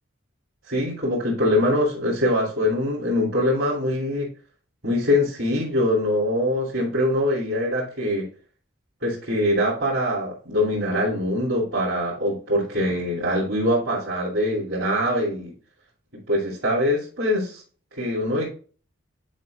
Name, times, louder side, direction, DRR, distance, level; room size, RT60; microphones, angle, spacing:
voice 1, 0.7-4.3 4.8-8.3 9.0-15.5 16.3-17.6 17.9-18.5, left 1 dB, 75° right, -6 dB, 2.7 m, -23 dB
9.3 x 5.3 x 2.4 m, 0.40 s
head